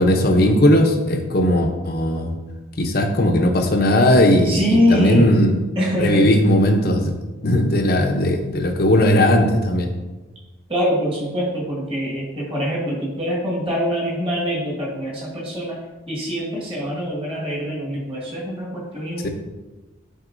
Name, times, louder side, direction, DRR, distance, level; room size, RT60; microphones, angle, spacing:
voice 1, 0.0-2.3 2.8-5.6 6.0-7.1 7.4-9.9 19.2-19.3, left 1 dB, 50° left, 4 dB, 0.7 m, -17 dB
voice 2, 4.4-5.3 5.8-6.3 10.7-15.8 16.1-19.3, equal, 25° right, -5 dB, 1.7 m, -23 dB
9.2 x 4.0 x 2.6 m, 1.2 s
head